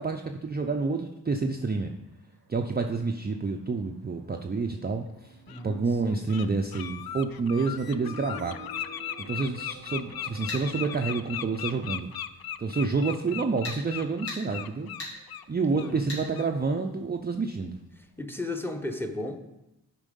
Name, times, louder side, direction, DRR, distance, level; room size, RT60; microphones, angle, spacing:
voice 1, 0.0-1.9 2.5-5.4 5.6-8.6 9.2-12.1 12.6-14.9 15.5-17.8, right 4 dB, 25° right, 3 dB, 0.5 m, -28 dB
sound 1, 1.3-2.8 3.0-3.6 4.0-4.1 4.9-12.0, right 2 dB, 75° right, 0.8 m, -49 dB
Bird, 4.6-4.7 5.5-5.6 6.0-6.4 6.7-15.4 15.7-15.9 16.3-16.5, left 10 dB, 65° left, 0.5 m, -37 dB
voice 2, 5.5-6.2 12.8-13.1 15.7-16.1 18.2-19.4, left 2 dB, 5° left, 7 dB, 0.9 m, -35 dB
sound 2, 10.5-10.6 13.6-13.8 14.3-14.4 15.0-15.1 16.1-16.2, left 1 dB, 90° left, 2.4 m, -36 dB
7.1 x 4.5 x 5.3 m, 0.95 s
cardioid pair, 50°, 41 cm